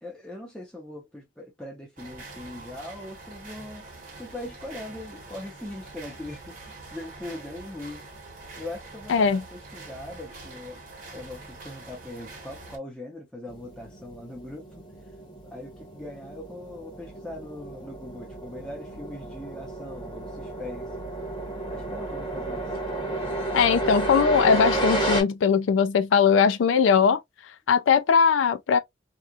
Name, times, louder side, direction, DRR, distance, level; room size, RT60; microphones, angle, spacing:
voice 1, 0.0-3.8 4.2-8.0 8.6-10.8 11.1-14.7 15.5-20.9 21.7-22.7, left 1 dB, 5° left, 0.8 m, -40 dB
sound 1, 2.0-12.8, right 3 dB, 45° right, 1.1 m, -44 dB
voice 2, 9.1-9.4 23.5-27.2 27.7-28.8, left 6 dB, 80° left, 0.4 m, -20 dB
sound 2, 13.5-25.2, right 2 dB, 20° left, 1.2 m, -32 dB
2.9 x 2.4 x 2.3 m
head